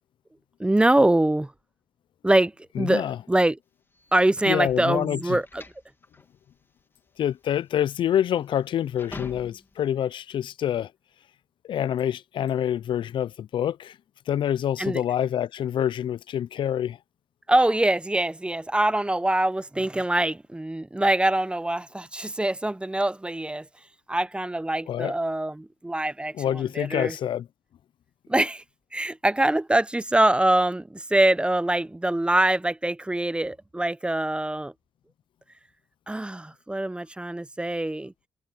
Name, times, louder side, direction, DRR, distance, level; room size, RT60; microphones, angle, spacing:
voice 1, 0.6-1.5 2.2-2.5 2.8-3.6 4.1-5.6 14.8-15.0 17.5-23.7 24.1-27.2 28.3-28.6 28.9-34.7 36.1-38.1, right 1 dB, 10° right, 0.7 m, -24 dB
voice 2, 2.8-3.2 4.5-5.4 7.2-10.9 11.6-14.0 14.3-17.0 24.9-25.1 26.4-27.5, left 10 dB, 65° left, 0.5 m, -26 dB
sound 1, 3.9-9.9, left 3 dB, 25° left, 2.2 m, -46 dB
supercardioid pair, 60°, 9 cm